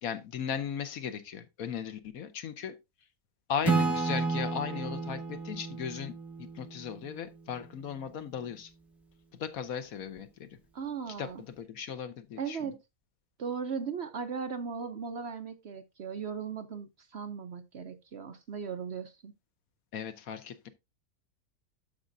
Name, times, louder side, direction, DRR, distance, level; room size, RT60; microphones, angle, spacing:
voice 1, 0.0-2.8 3.5-6.1 6.4-8.7 9.4-10.6 11.2-12.7 19.9-20.7, left 8 dB, 70° left, 1.3 m, -37 dB
Acoustic guitar / Strum, 3.6-7.2, right 3 dB, ahead, 1.8 m, -31 dB
voice 2, 10.7-11.4 12.4-12.8 13.4-19.3, right 6 dB, 55° right, 0.9 m, -37 dB
12.5 x 5.1 x 2.6 m
omnidirectional pair, 1.6 m